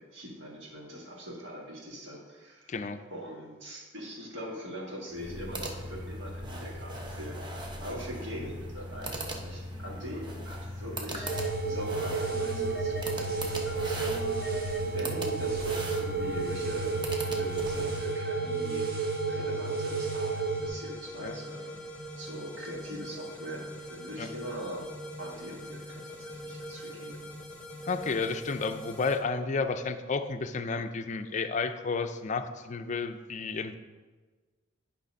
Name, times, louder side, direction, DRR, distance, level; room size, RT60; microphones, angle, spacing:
voice 1, 0.0-2.8 3.1-11.4 11.6-17.0 17.2-21.8 22.2-24.9 25.2-27.3, equal, 70° right, -2 dB, 1.8 m, -42 dB
voice 2, 2.7-3.0 21.2-21.3 24.2-24.3 27.8-33.8, left 4 dB, 40° left, 9 dB, 0.4 m, -32 dB
sound 1, 5.1-18.1, equal, 25° right, 0.8 m, -39 dB
sound 2, 10.9-11.5 11.9-13.1 13.7-14.8 15.7-29.2, left 1 dB, 5° left, 1.2 m, -43 dB
sound 3, 11.3-20.7, right 4 dB, 50° right, 1.2 m, -31 dB
10.0 x 3.5 x 5.3 m, 1.4 s
head